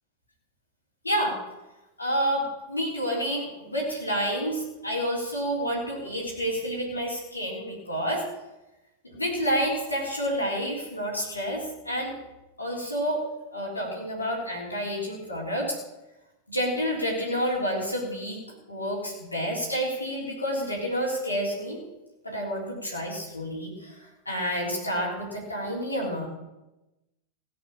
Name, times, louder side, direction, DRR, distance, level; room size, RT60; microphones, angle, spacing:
voice 1, 1.0-1.4 2.0-8.3 9.1-12.1 12.6-13.2 13.5-15.8 16.5-18.4 18.7-21.8 22.2-26.3, equal, 80° left, -3 dB, 3.7 m, -29 dB
16.5 x 7.8 x 7.3 m, 0.99 s
figure-of-eight pair, 90°, 0 cm